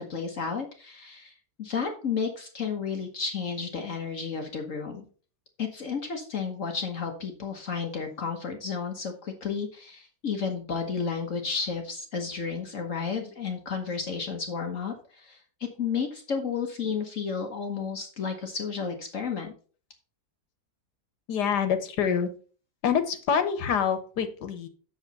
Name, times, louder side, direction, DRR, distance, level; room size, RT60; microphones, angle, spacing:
voice 1, 0.0-5.1 5.6-15.4 15.8-19.5, left 5 dB, 55° left, 4 dB, 1.4 m, -32 dB
voice 2, 21.3-22.3 22.8-24.7, left 7 dB, 85° left, 9 dB, 1.7 m, -26 dB
7.9 x 6.7 x 4.1 m, 0.39 s
omnidirectional pair, 1.7 m